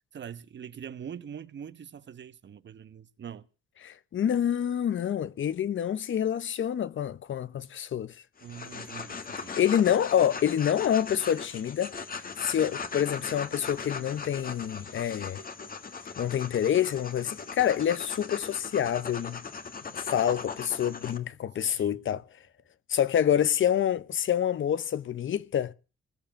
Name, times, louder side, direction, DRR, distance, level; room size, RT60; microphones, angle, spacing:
voice 1, 0.1-3.5 8.4-9.6 21.7-22.0, right 8 dB, 60° right, 1.1 m, -43 dB
voice 2, 3.8-8.1 9.6-11.9 12.4-15.4 16.2-19.4 19.9-22.2 22.9-25.7, left 9 dB, 65° left, 0.9 m, -27 dB
sound 1, 8.4-21.2, left 5 dB, 45° left, 1.6 m, -39 dB
19.5 x 7.2 x 8.9 m
cardioid pair, 100°, 21 cm